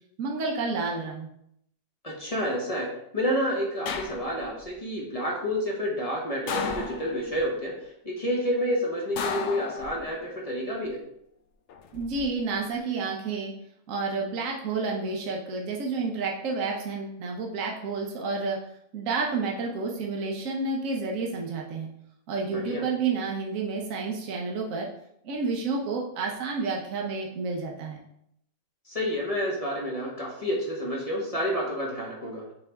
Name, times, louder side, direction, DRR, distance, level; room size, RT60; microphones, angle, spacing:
voice 1, 0.2-1.3 11.9-13.5 13.9-18.6 18.9-21.9 22.3-24.9 25.2-28.0, right 4 dB, 65° right, 0 dB, 1.3 m, -30 dB
voice 2, 2.0-2.9 3.1-11.0 22.5-22.8 28.9-32.4, equal, 25° left, -3 dB, 1.3 m, -29 dB
sound 1, 3.9-4.6 6.5-7.4 9.2-10.3 11.7-12.2, left 6 dB, 60° left, 0.8 m, -33 dB
6.9 x 4.1 x 3.5 m, 0.74 s
omnidirectional pair, 1.6 m